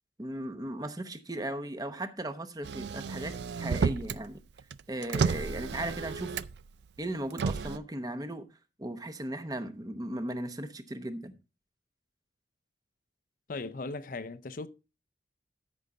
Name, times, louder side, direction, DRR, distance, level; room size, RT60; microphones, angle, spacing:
voice 1, 0.2-4.4 4.9-6.4 7.0-8.5 8.8-11.3, right 1 dB, 20° right, 0.8 m, -37 dB
Motor vehicle (road), 2.6-4.2 4.6-6.7 7.3-7.8, right 5 dB, 65° right, 0.4 m, -32 dB
voice 2, 13.5-14.7, left 3 dB, 50° left, 0.5 m, -38 dB
13.5 x 5.6 x 3.8 m
head